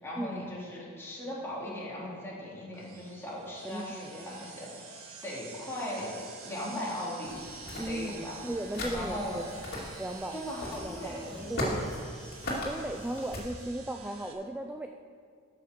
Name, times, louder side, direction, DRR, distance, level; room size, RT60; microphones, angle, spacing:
voice 1, 0.0-6.1 6.4-7.4 7.8-8.4 8.9-9.4 10.3-11.7, left 1 dB, 10° left, -7 dB, 2.8 m, -38 dB
sound 1, 2.7-14.3, right 5 dB, 85° right, 1.5 m, -49 dB
voice 2, 3.6-4.4 7.8-9.5 10.0-11.2 11.5-11.8 12.6-14.9, right 1 dB, 5° right, 4 dB, 0.4 m, -37 dB
sound 2, 7.2-13.4, left 1 dB, 50° left, 2.5 m, -38 dB
13.0 x 5.8 x 6.6 m, 2.1 s
head